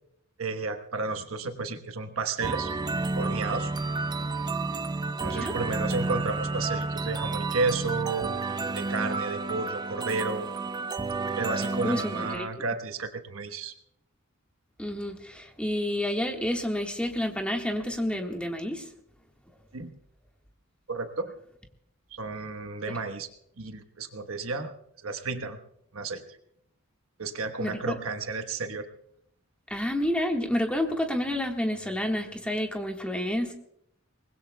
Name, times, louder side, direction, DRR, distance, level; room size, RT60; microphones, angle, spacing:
voice 1, 0.4-2.7 3.1-3.7 5.2-8.3 8.7-10.5 11.4-13.7 19.7-20.0 20.9-21.3 22.1-23.3 23.6-25.6 25.9-26.2 27.2-28.9, right 3 dB, 75° right, 7 dB, 1.2 m, -32 dB
sound 1, 2.4-12.4, right 3 dB, 20° right, 0.5 m, -31 dB
voice 2, 11.8-12.5 14.8-18.8 27.6-28.0 29.7-33.5, left 1 dB, 5° left, 2 dB, 1.5 m, -29 dB
24.0 x 20.0 x 2.3 m, 0.71 s
head